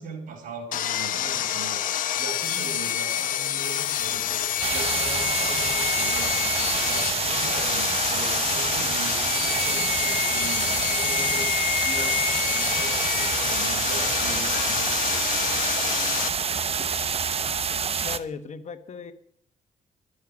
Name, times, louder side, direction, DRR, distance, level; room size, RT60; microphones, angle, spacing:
voice 1, 0.0-1.8 2.2-15.0, right 4 dB, 75° right, 2 dB, 4.1 m, -39 dB
Sawing, 0.7-16.3, left 11 dB, 75° left, 0.9 m, -27 dB
sound 1, 3.9-9.9, left 1 dB, 20° left, 2.6 m, -50 dB
sound 2, 4.6-18.2, right 6 dB, 45° right, 0.9 m, -27 dB
voice 2, 18.0-19.1, left 5 dB, 55° left, 9 dB, 1.4 m, -36 dB
12.5 x 6.6 x 9.7 m, 0.65 s
cardioid pair, 75°, 14 cm